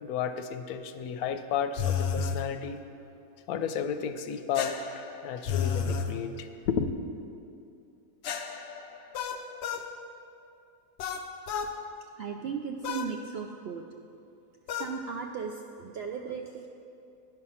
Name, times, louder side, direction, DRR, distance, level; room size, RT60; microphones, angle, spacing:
voice 1, 0.0-2.8 3.5-6.9, left 7 dB, 85° left, 9 dB, 1.1 m, -32 dB
sound 1, 1.8-2.4 4.5-6.1 8.2-9.9 11.0-11.7 12.8-13.1 14.7-15.0, left 7 dB, 65° left, 0.7 m, -32 dB
voice 2, 12.2-13.8 14.8-16.7, right 6 dB, 70° right, 3 dB, 0.6 m, -36 dB
9.7 x 6.3 x 5.6 m, 2.6 s
omnidirectional pair, 1.5 m